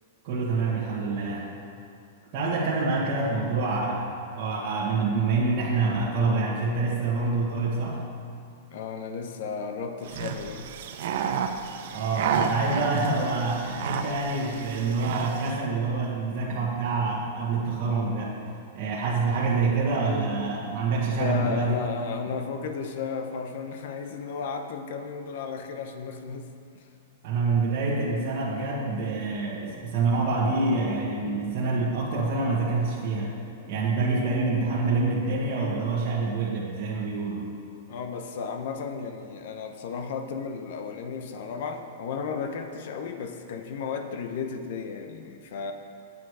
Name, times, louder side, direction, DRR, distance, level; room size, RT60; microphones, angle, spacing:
voice 1, 0.2-1.6 2.3-8.0 11.9-18.4 18.7-21.7 27.2-33.4 33.7-37.5, right 3 dB, 45° right, -8 dB, 1.7 m, -26 dB
voice 2, 8.7-10.7 21.2-26.9 37.9-45.7, left 5 dB, 60° left, 6 dB, 0.8 m, -34 dB
sound 1, 10.0-15.6, right 7 dB, 60° right, 0.7 m, -31 dB
8.9 x 8.5 x 4.8 m, 2.4 s
hypercardioid pair, 150°, 0 cm